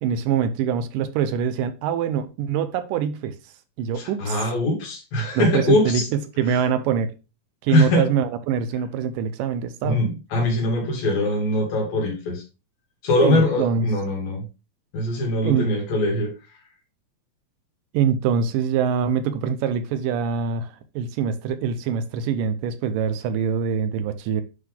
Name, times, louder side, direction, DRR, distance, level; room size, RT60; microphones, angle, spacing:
voice 1, 0.0-3.3 3.8-4.4 5.4-7.1 7.6-10.0 13.2-13.9 15.4-15.7 17.9-20.7 21.0-24.4, right 7 dB, 85° right, 2.3 m, -24 dB
voice 2, 4.0-6.1 6.5-6.6 7.7-8.1 9.8-12.4 13.0-14.4 14.9-16.3, left 1 dB, 90° left, 4.0 m, -22 dB
9.4 x 3.7 x 3.7 m
omnidirectional pair, 3.9 m